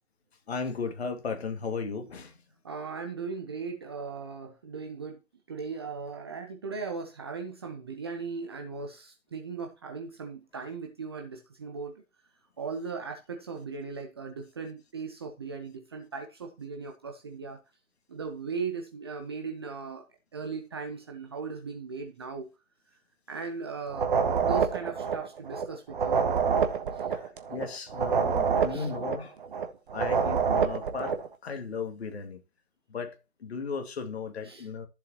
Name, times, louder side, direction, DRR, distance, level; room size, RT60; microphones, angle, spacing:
voice 1, 0.5-2.4 27.1-29.4 29.9-32.4 32.9-34.9, left 5 dB, 45° left, 2.2 m, -36 dB
voice 2, 2.6-5.2 5.5-12.0 12.6-17.6 18.1-20.0 20.3-22.5 23.3-24.1 24.4-26.2 26.9-27.0 28.7-28.9 34.5-34.6, right 5 dB, 20° right, 0.7 m, -38 dB
sound 1, 23.9-31.3, right 6 dB, 35° right, 1.3 m, -27 dB
13.5 x 7.2 x 2.9 m
figure-of-eight pair, 135°, 43 cm